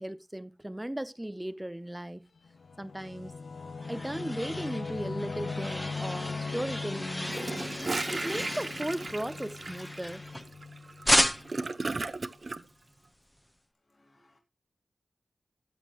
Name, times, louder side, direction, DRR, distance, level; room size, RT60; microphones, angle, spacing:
voice 1, 0.0-2.3 2.8-3.4 3.9-7.6 8.1-10.2, right 1 dB, 10° right, 0.6 m, -36 dB
Singing / Musical instrument, 2.4-11.6, left 4 dB, 70° left, 0.8 m, -39 dB
voice 2, 2.4-3.0 3.5-3.9 10.9-11.0 13.8-14.4, left 2 dB, 35° left, 2.0 m, -69 dB
sound 1, 3.3-10.6 11.0-11.7, equal, 10° left, 0.9 m, -33 dB
Gurgling / Toilet flush, 7.2-12.6, right 3 dB, 45° right, 0.8 m, -36 dB
14.0 x 8.2 x 3.0 m
wide cardioid pair, 85°, 0 cm